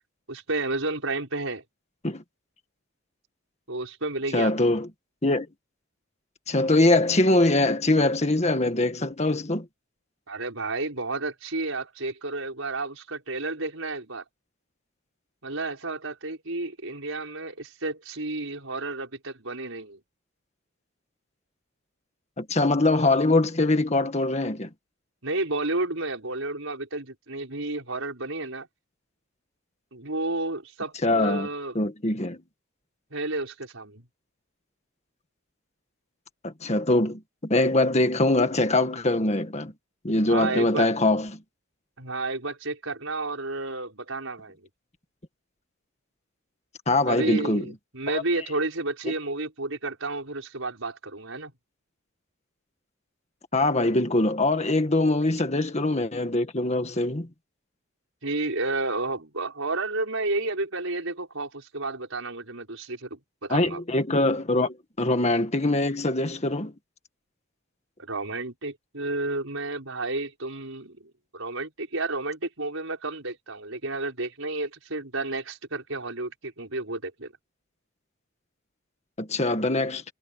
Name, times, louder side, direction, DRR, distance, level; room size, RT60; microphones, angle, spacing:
voice 1, 0.3-1.6 3.7-4.5 10.3-14.2 15.4-20.0 25.2-28.7 29.9-31.7 33.1-34.1 40.3-40.9 42.0-44.7 47.1-51.5 58.2-63.8 68.0-77.3, right 2 dB, 70° right, 5.8 m, -31 dB
voice 2, 4.3-4.9 5.2-5.5 6.5-9.7 22.4-24.7 31.0-31.5 31.8-32.4 36.4-39.7 40.0-41.4 46.9-47.6 48.1-48.2 53.5-57.3 63.5-66.7 79.2-80.0, left 2 dB, 30° left, 1.8 m, -23 dB
head